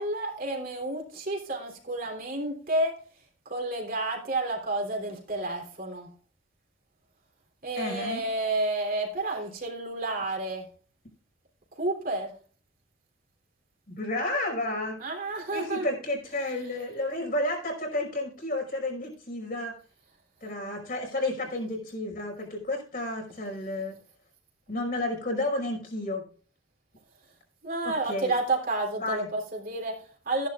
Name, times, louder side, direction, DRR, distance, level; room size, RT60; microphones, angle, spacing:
voice 1, 0.0-3.0 3.5-6.1 7.6-10.7 11.8-12.3 15.0-15.9 27.6-30.5, right 2 dB, 45° right, 0 dB, 3.4 m, -30 dB
voice 2, 7.8-8.2 13.9-15.0 15.5-19.8 20.4-24.0 24.7-26.3 27.8-28.3 29.0-29.3, left 1 dB, 45° left, 0 dB, 5.4 m, -31 dB
15.0 x 11.0 x 2.4 m, 0.41 s
head